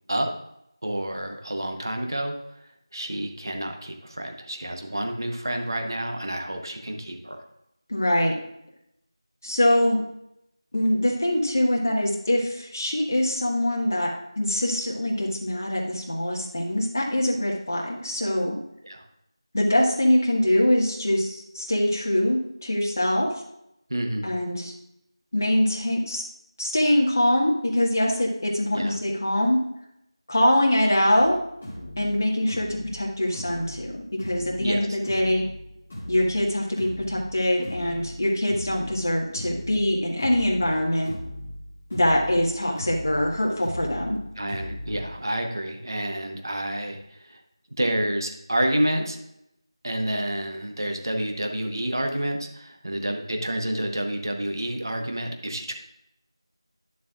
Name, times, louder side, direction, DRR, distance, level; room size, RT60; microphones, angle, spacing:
voice 1, 0.8-2.3 2.9-7.4 18.8-19.0 23.9-24.3 28.7-29.0 34.6-35.0 44.4-47.4 47.8-49.2 49.8-55.7, right 1 dB, 45° right, 4 dB, 1.0 m, -29 dB
voice 2, 7.9-8.3 9.4-10.0 10.7-14.1 14.3-18.6 19.5-23.3 24.2-24.7 25.3-26.2 26.6-29.6 30.3-31.4 32.0-35.4 36.1-41.1 41.9-44.2, left 1 dB, 35° left, -1 dB, 1.6 m, -23 dB
sound 1, 31.2-45.2, left 1 dB, 5° left, 0.4 m, -39 dB
11.0 x 7.3 x 2.4 m, 0.80 s
figure-of-eight pair, 180°, 3 cm